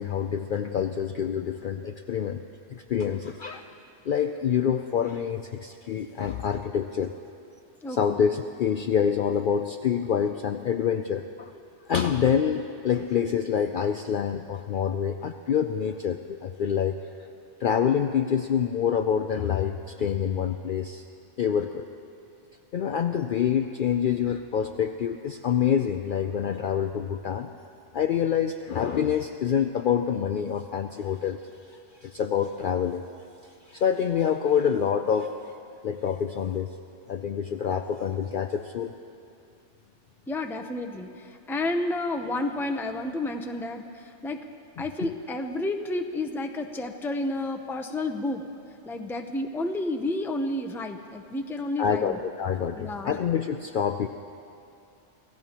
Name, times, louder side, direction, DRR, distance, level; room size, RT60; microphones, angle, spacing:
voice 1, 0.0-2.4 2.7-3.7 4.1-7.1 7.9-11.5 11.9-17.0 17.6-21.0 21.4-21.9 22.7-27.5 27.9-31.4 32.0-33.0 33.7-35.3 35.8-36.7 37.1-38.9 45.0-45.1 51.8-54.1, left 8 dB, 60° left, 6 dB, 0.5 m, -26 dB
voice 2, 7.8-8.2 40.3-44.4 44.8-48.4 48.8-52.2 52.7-53.2, left 2 dB, 5° left, 5 dB, 0.5 m, -31 dB
27.0 x 16.0 x 3.0 m, 2.6 s
omnidirectional pair, 1.2 m